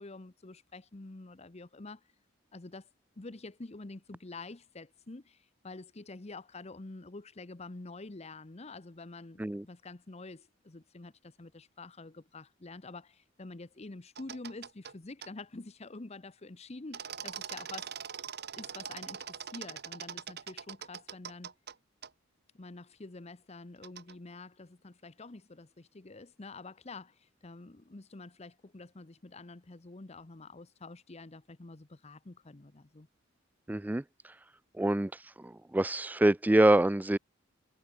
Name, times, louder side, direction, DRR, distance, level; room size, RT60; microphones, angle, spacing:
voice 1, 0.0-2.1 2.5-2.9 3.2-17.9 18.5-21.5 22.5-33.1, left 3 dB, 30° left, 0.8 m, -47 dB
sound 1, 14.2-14.9 15.2-15.3 16.9-21.7 22.0-22.1 23.8-24.1, right 8 dB, 55° right, 2.2 m, -42 dB
voice 2, 33.7-34.0 34.8-35.1 35.4-37.2, right 1 dB, 10° right, 0.3 m, -25 dB
head